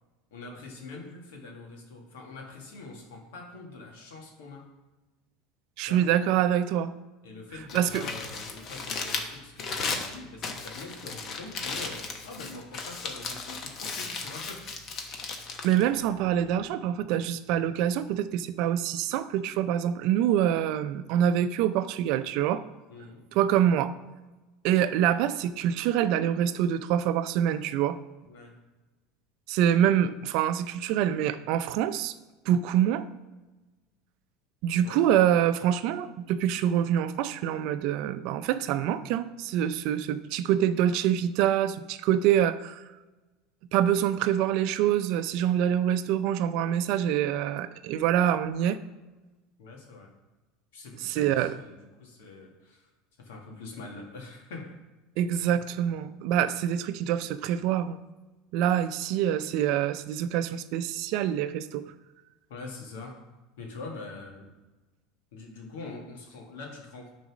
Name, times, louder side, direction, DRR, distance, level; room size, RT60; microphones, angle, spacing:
voice 1, 0.3-4.7 5.8-6.1 7.2-14.7 22.9-23.2 28.3-28.5 34.8-35.1 49.6-50.1 50.7-52.9 53.2-54.8 55.4-55.5 62.5-63.2 63.6-64.5 65.3-67.1, left 3 dB, 80° left, 0 dB, 2.1 m, -44 dB
voice 2, 5.8-6.9 7.7-8.0 15.6-22.6 23.3-23.9 24.6-28.0 29.5-32.1 32.5-33.1 34.6-42.8 43.7-48.8 51.0-51.5 55.2-58.0 58.5-61.9, right 10 dB, 65° right, 12 dB, 0.5 m, -25 dB
Crumpling crinkling, 7.5-16.7, left 4 dB, 45° left, 1.3 m, -36 dB
9.3 x 4.2 x 6.1 m, 1.1 s
hypercardioid pair, 95°, 0 cm